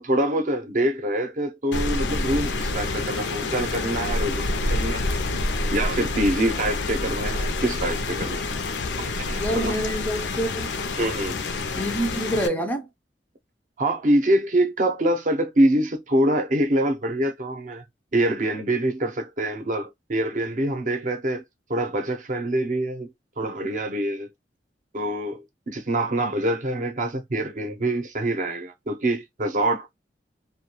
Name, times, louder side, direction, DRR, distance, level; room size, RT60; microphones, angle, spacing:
voice 1, 0.0-5.0 5.7-8.5 9.0-9.7 11.0-11.4 13.8-17.8 18.1-21.4 21.7-23.1 23.4-24.3 24.9-29.9, right 1 dB, 45° right, 0.6 m, -25 dB
Rain, 1.7-12.5, left 2 dB, 80° left, 0.5 m, -27 dB
voice 2, 9.3-10.8 11.8-12.9, equal, 10° left, 0.4 m, -27 dB
2.3 x 2.2 x 2.8 m
head